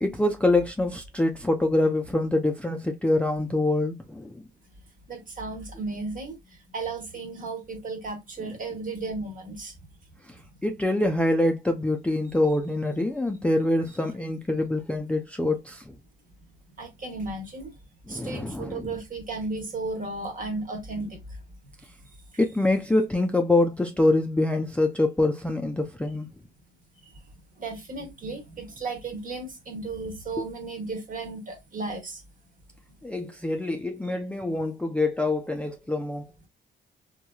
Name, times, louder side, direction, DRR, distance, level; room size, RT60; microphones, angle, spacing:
voice 1, 0.0-4.4 10.6-15.8 18.1-18.9 22.4-26.3 33.0-36.3, left 2 dB, 5° left, 0.4 m, -25 dB
voice 2, 5.1-9.7 16.8-17.7 18.1-21.2 27.6-32.2 34.0-34.1, right 3 dB, 45° right, 1.3 m, -34 dB
2.9 x 2.7 x 2.3 m
cardioid pair, 90°, 20 cm